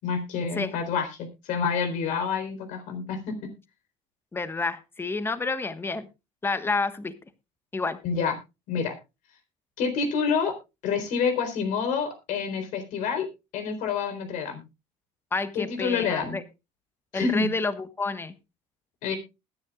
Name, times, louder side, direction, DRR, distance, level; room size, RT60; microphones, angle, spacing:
voice 1, 0.0-3.2 8.0-8.3 8.7-9.0 9.8-10.5 10.8-13.3 13.5-14.6 15.5-16.4 17.1-17.5 19.0-19.2, left 6 dB, 70° left, 8 dB, 4.0 m, -28 dB
voice 2, 4.3-6.1 6.4-7.1 7.7-8.0 15.3-16.4 17.1-18.3, left 3 dB, 15° left, 12 dB, 1.3 m, -29 dB
20.0 x 9.9 x 2.4 m, 0.26 s
cardioid pair, 115°, 13 cm